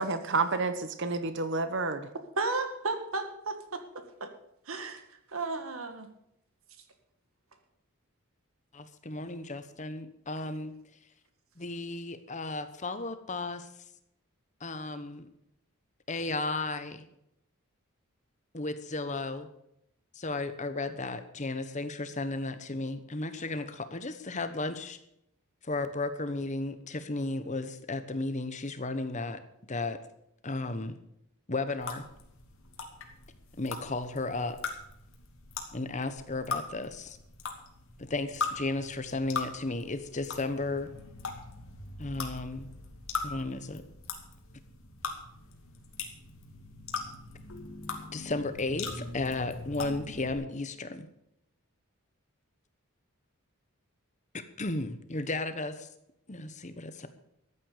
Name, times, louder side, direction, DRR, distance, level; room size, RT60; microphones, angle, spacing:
voice 1, 0.0-2.1, right 3 dB, 55° right, 10 dB, 0.9 m, -29 dB
voice 2, 2.4-3.8 4.2-4.3 4.7-5.0 5.3-6.1, right 3 dB, 70° right, 7 dB, 1.9 m, -33 dB
voice 3, 8.7-10.7 11.6-13.7 14.6-15.3 16.1-17.1 18.5-19.5 20.1-25.0 25.6-29.4 29.7-30.0 30.4-31.0 31.5-32.0 33.6-34.7 35.7-37.2 38.0-40.9 42.0-42.7 43.2-43.8 48.1-51.1 54.3-55.9 56.3-57.1, left 2 dB, 35° left, 10 dB, 1.1 m, -34 dB
sound 1, 31.8-50.3, left 4 dB, 70° left, 2.5 m, -40 dB
13.5 x 9.4 x 6.8 m, 0.79 s
head